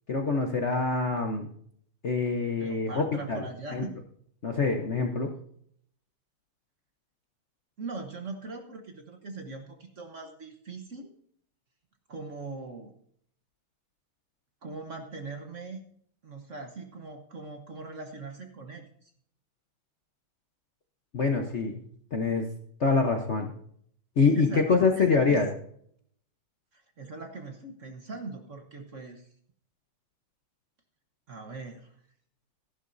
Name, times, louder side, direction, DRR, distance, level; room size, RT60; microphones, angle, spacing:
voice 1, 0.1-1.5 2.0-3.4 3.7-3.8 4.4-5.3 21.1-21.8 22.1-22.4 22.8-23.5 24.2-25.5, left 4 dB, 45° left, 3 dB, 1.0 m, -25 dB
voice 2, 2.6-3.9 7.8-11.1 12.1-12.9 14.6-15.8 16.2-19.1 24.3-25.4 26.7-29.3 31.3-31.9, right 3 dB, 45° right, 4 dB, 1.3 m, -40 dB
14.5 x 11.5 x 2.7 m, 0.64 s
omnidirectional pair, 2.2 m